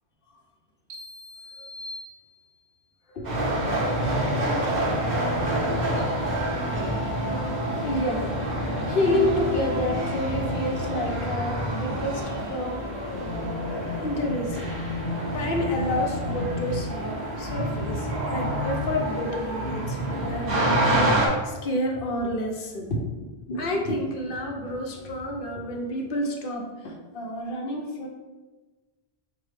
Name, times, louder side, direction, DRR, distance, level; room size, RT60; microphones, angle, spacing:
sound 1, 0.9-2.8, left 1 dB, 85° right, 0.9 m, -42 dB
voice 1, 3.1-3.6 7.8-12.8 14.0-14.7 15.3-28.1, left 1 dB, 65° left, 1 dB, 0.7 m, -29 dB
sound 2, 3.2-21.3, right 1 dB, 45° right, 0.9 m, -27 dB
4.7 x 2.2 x 3.2 m, 1.2 s
omnidirectional pair, 1.1 m